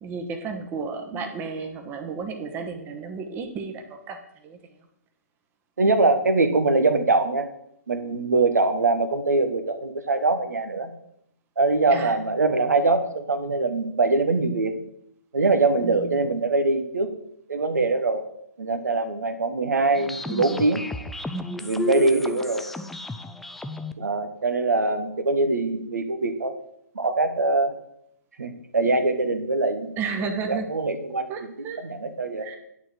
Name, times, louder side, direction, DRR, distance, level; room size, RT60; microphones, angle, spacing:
voice 1, 0.0-4.2 4.4-4.6 11.9-12.2 15.8-16.3 30.0-30.7 31.3-31.8 32.4-32.5, right 5 dB, 20° right, 5 dB, 1.1 m, -32 dB
voice 2, 5.8-7.5 7.9-10.9 11.6-14.7 15.3-17.1 17.5-18.2 18.6-20.8 21.6-22.6 24.0-26.5 26.9-27.7 28.4-29.9 30.5-31.5 31.8-32.5, right 3 dB, 70° right, 8 dB, 1.0 m, -23 dB
sound 1, 20.0-23.9, left 2 dB, 5° left, 0.4 m, -33 dB
9.4 x 4.1 x 7.4 m, 0.75 s
figure-of-eight pair, 125°, 9 cm